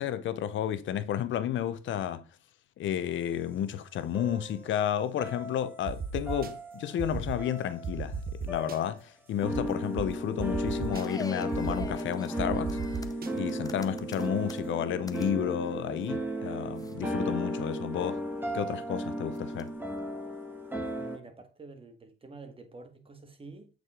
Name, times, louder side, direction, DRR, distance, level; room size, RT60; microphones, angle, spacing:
voice 1, 0.0-2.2 2.8-12.8 13.3-18.2 18.5-19.7, left 10 dB, 75° left, 0.8 m, -32 dB
sound 1, 4.1-4.8 5.2-6.0 6.3-7.0 7.4-8.1 8.5-9.0 9.4-21.2, right 1 dB, 10° right, 2.2 m, -35 dB
sound 2, 5.9-6.5 7.0-7.4 7.8-8.8 9.5-9.6 10.0-10.1 10.4-11.0 11.5-11.9 12.4-13.3, right 6 dB, 50° right, 1.1 m, -35 dB
sound 3, 10.9-15.3 15.6-16.2 16.8-17.0 17.3-17.7 18.2-18.7 19.3-20.0, left 3 dB, 20° left, 0.7 m, -45 dB
voice 2, 21.0-23.7, right 3 dB, 25° right, 1.7 m, -48 dB
8.2 x 4.8 x 3.7 m
cardioid pair, 90°, 20 cm